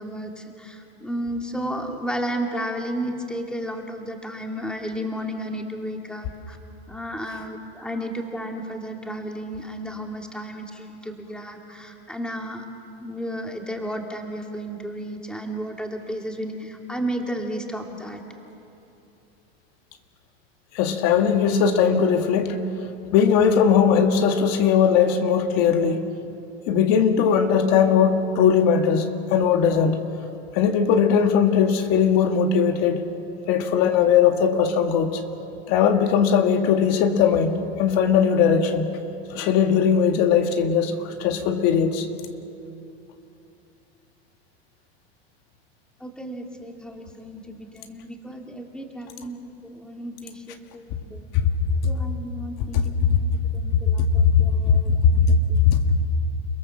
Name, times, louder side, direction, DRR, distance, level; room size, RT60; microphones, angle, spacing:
voice 1, 0.0-6.6 6.9-12.7 13.0-18.2 46.0-49.4 49.6-51.3 51.9-55.6, equal, 5° left, 2 dB, 2.6 m, -33 dB
voice 2, 20.7-22.6 23.1-26.1 26.7-30.0 30.5-33.0 33.5-35.2 35.7-38.9 39.3-42.1 53.1-53.2 54.2-55.2 55.6-56.0, left 7 dB, 55° left, 5 dB, 1.9 m, -19 dB
30.0 x 17.5 x 7.4 m, 2.8 s
supercardioid pair, 120°, 31 cm